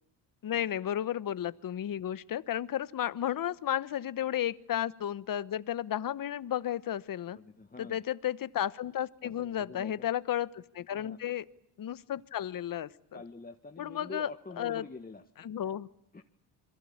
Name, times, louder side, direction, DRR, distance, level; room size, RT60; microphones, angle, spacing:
voice 1, 0.4-7.4 7.8-11.4 11.8-12.9 13.8-14.3 14.6-14.8 15.4-15.9, left 11 dB, 50° left, 17 dB, 1.1 m, -33 dB
voice 2, 7.3-8.0 9.2-10.1 10.9-11.2 13.1-15.2 16.1-16.2, left 3 dB, 20° left, 4 dB, 1.7 m, -46 dB
27.0 x 22.0 x 8.8 m, 0.73 s
supercardioid pair, 75°, 43 cm